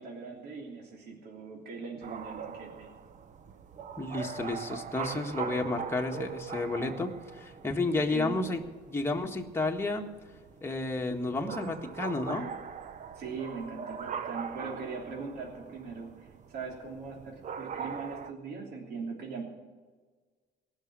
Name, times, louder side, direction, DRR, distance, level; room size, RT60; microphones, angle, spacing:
voice 1, 0.0-2.9 7.9-8.4 13.1-19.4, right 4 dB, 70° right, -1 dB, 3.2 m, -40 dB
sound 1, 2.0-18.3, right 7 dB, 45° right, 0.9 m, -42 dB
voice 2, 4.0-8.6 8.9-10.1 10.6-12.5, left 2 dB, 15° left, 2 dB, 1.6 m, -31 dB
18.5 x 6.5 x 9.8 m, 1.4 s
cardioid pair, 110°, 17 cm